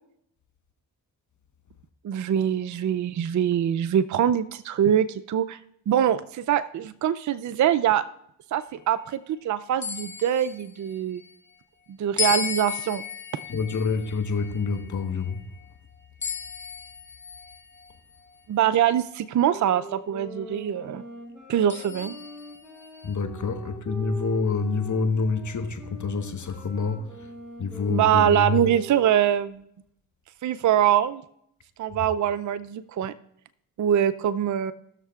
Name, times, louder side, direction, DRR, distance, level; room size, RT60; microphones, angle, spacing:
voice 1, 2.0-5.6 5.9-8.0 8.5-11.2 11.9-13.0 18.5-21.0 21.5-22.2 27.9-29.6 30.4-31.2 31.8-33.1 33.8-34.7, right 10 dB, 50° right, 0.5 m, -23 dB
sound 1, 9.8-11.3 12.2-15.6 16.2-17.9 18.7-18.8 21.7-23.1, left 6 dB, 30° left, 1.2 m, -35 dB
voice 2, 13.5-15.4 23.0-27.3 27.6-28.6, left 4 dB, 45° left, 1.3 m, -27 dB
sound 2, 19.4-29.4, right 2 dB, ahead, 4.2 m, -42 dB
19.0 x 6.6 x 2.4 m
supercardioid pair, 45°, 39 cm